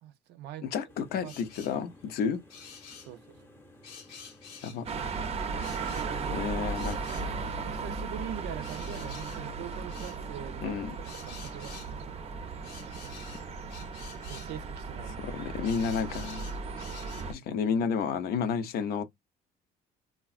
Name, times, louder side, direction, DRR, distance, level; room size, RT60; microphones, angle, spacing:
voice 1, 0.0-0.7 1.2-1.3 3.1-3.5 5.7-6.5 7.6-12.2 14.3-15.3, right 11 dB, 80° right, 0.5 m, -43 dB
voice 2, 0.6-2.4 4.6-4.9 6.3-7.4 10.6-11.0 15.2-16.5 17.3-19.0, left 6 dB, 65° left, 0.5 m, -31 dB
sound 1, 0.9-13.5, left 1 dB, 15° left, 0.7 m, -55 dB
sound 2, 1.2-1.8 2.5-3.1 3.8-5.0 5.6-6.3 6.7-7.6 8.6-10.2 11.0-11.9 12.6-14.5 15.2-17.3, left 6 dB, 85° left, 0.9 m, -49 dB
sound 3, 4.9-17.3, right 4 dB, 35° right, 0.5 m, -36 dB
3.4 x 2.1 x 2.4 m
cardioid pair, 110°, 17 cm